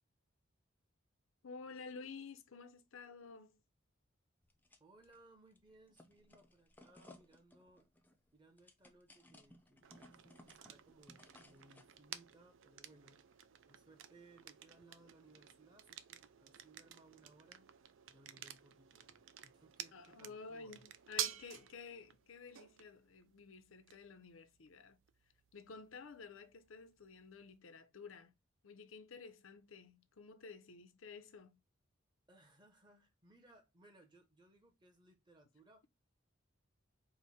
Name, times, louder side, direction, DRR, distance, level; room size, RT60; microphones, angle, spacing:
voice 1, 1.4-3.6 19.9-25.0 25.5-28.3 28.6-31.6, left 4 dB, 75° left, 0.6 m, -52 dB
sound 1, 4.4-5.2 5.5-12.0, left 1 dB, 10° left, 0.5 m, -62 dB
voice 2, 4.8-7.9 8.3-17.7 18.1-20.8 32.3-35.9, right 2 dB, 20° right, 0.8 m, -65 dB
sound 2, 9.8-27.6, right 11 dB, 65° right, 0.4 m, -51 dB
4.9 x 2.1 x 4.1 m
head